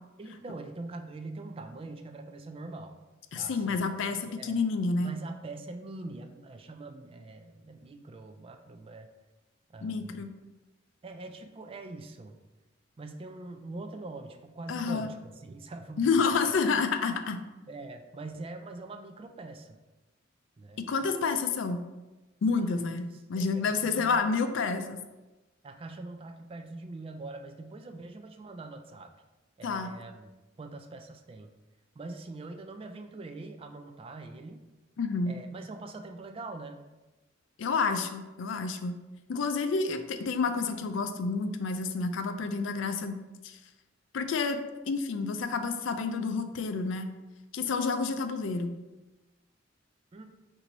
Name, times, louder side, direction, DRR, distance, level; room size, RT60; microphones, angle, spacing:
voice 1, 0.2-3.0 3.3-3.8 4.1-4.6 5.0-9.1 9.7-10.3 11.0-12.4 13.0-16.1 17.7-19.8 20.6-20.8 22.6-24.2 25.6-29.1 29.6-30.3 30.6-31.5 31.9-34.7 35.3-36.8 50.1-50.3, right 2 dB, 30° right, 6 dB, 0.3 m, -43 dB
voice 2, 3.3-5.1 9.8-10.3 14.7-15.1 16.0-17.4 20.8-21.8 22.4-25.0 29.6-29.9 35.0-35.3 37.6-39.0 39.3-43.2 43.4-43.6 44.1-47.1 47.5-48.7, left 4 dB, 70° left, 9 dB, 0.4 m, -29 dB
4.5 x 2.6 x 4.0 m, 1.1 s
head